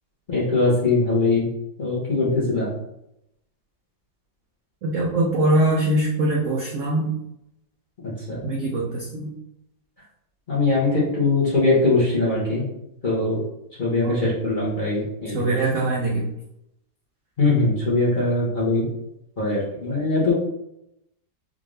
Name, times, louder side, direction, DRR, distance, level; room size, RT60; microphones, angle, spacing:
voice 1, 0.3-1.5 1.8-2.7 8.0-8.4 10.5-12.6 13.0-13.4 13.8-15.4 17.4-18.9 19.4-20.3, left 3 dB, 40° left, -7 dB, 0.8 m, -21 dB
voice 2, 4.8-7.2 8.4-9.3 14.0-14.3 15.3-16.3, right 1 dB, 75° right, -2 dB, 0.7 m, -23 dB
3.7 x 2.5 x 3.1 m, 0.83 s
omnidirectional pair, 2.0 m